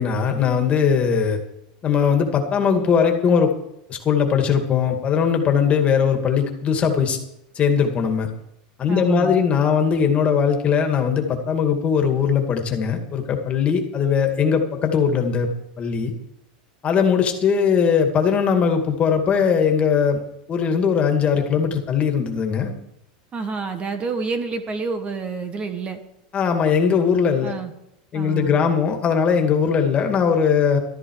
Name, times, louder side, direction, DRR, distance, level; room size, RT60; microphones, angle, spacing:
voice 1, 0.0-1.4 1.8-3.5 3.9-7.2 7.6-8.3 8.8-15.5 15.8-16.1 16.8-20.2 20.5-22.7 26.3-27.5 28.1-30.8, left 6 dB, 30° left, 4 dB, 2.3 m, -20 dB
voice 2, 8.9-9.4 23.3-26.0 27.4-27.7 28.1-28.8, right 4 dB, 25° right, 8 dB, 1.5 m, -29 dB
14.0 x 13.0 x 4.9 m, 0.82 s
supercardioid pair, 130°, 4 cm